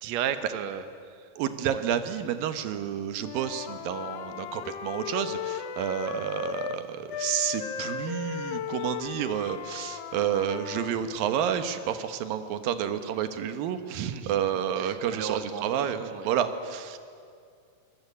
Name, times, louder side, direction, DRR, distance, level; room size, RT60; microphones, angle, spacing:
voice 1, 0.0-1.3 1.7-1.8 13.9-14.3 14.8-16.3 16.9-17.0, right 9 dB, 65° right, 9 dB, 2.0 m, -35 dB
voice 2, 1.4-17.0, right 9 dB, 90° right, 9 dB, 2.9 m, -30 dB
Wind instrument woodwind instrument, 3.2-6.8 7.1-11.0, left 7 dB, 70° left, 1.5 m, -36 dB
23.5 x 20.5 x 8.4 m, 2.3 s
omnidirectional pair, 4.0 m